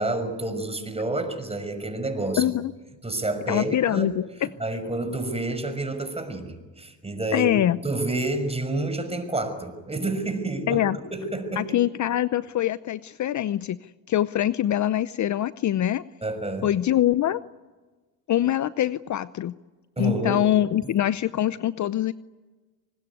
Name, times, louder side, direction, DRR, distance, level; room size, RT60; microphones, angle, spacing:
voice 1, 0.0-2.4 3.0-4.1 4.4-10.8 11.2-11.7 16.2-16.7 20.0-20.4, right 2 dB, 15° right, 9 dB, 5.8 m, -29 dB
voice 2, 2.4-2.7 3.5-4.5 7.3-7.8 10.7-11.0 11.6-16.0 16.6-17.4 18.3-19.6 20.0-22.1, left 12 dB, 45° left, 16 dB, 0.7 m, -24 dB
25.5 x 20.5 x 9.5 m, 1.3 s
supercardioid pair, 75°, 41 cm